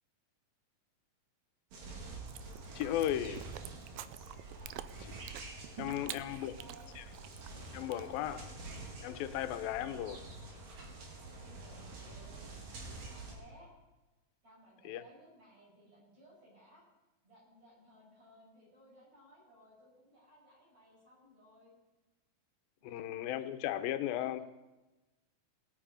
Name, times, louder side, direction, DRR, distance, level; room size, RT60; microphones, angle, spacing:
sound 1, 1.7-13.3, right 3 dB, 70° right, 4.0 m, -47 dB
Chewing mastication, 2.3-8.4, right 13 dB, 85° right, 2.4 m, -49 dB
voice 1, 2.8-3.5 5.8-6.5 7.0-7.1 7.7-8.5 9.0-10.2 14.8-15.0 22.8-24.4, left 12 dB, 85° left, 10 dB, 2.5 m, -36 dB
voice 2, 4.5-4.9 5.6-6.9 9.6-10.2 11.4-12.6 13.1-13.7 14.4-16.8 17.2-21.7 22.8-23.0 24.2-24.4, equal, 50° right, -6 dB, 7.0 m, -60 dB
19.5 x 8.8 x 5.1 m, 1.1 s
omnidirectional pair, 4.1 m